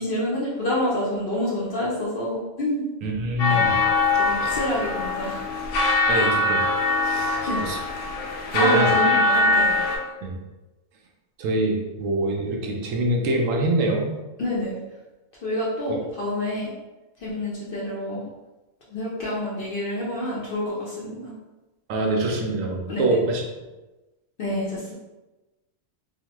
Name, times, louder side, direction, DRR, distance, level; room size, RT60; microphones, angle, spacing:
voice 1, 0.0-2.9 3.5-3.8 4.2-5.4 6.1-6.3 7.4-7.6 8.5-9.8 14.4-14.8 15.4-16.7 17.2-18.2 18.9-21.3 22.9-23.2 24.4-24.9, left 1 dB, 55° left, -5 dB, 0.6 m, -28 dB
voice 2, 3.0-3.7 4.4-4.6 6.1-6.6 7.1-7.8 8.5-8.9 10.2-10.3 11.4-14.1 21.9-23.4, right 1 dB, 75° right, 0 dB, 0.9 m, -24 dB
sound 1, 3.4-10.0, left 2 dB, 85° left, 1.0 m, -22 dB
3.0 x 2.1 x 2.9 m, 1.1 s
omnidirectional pair, 1.4 m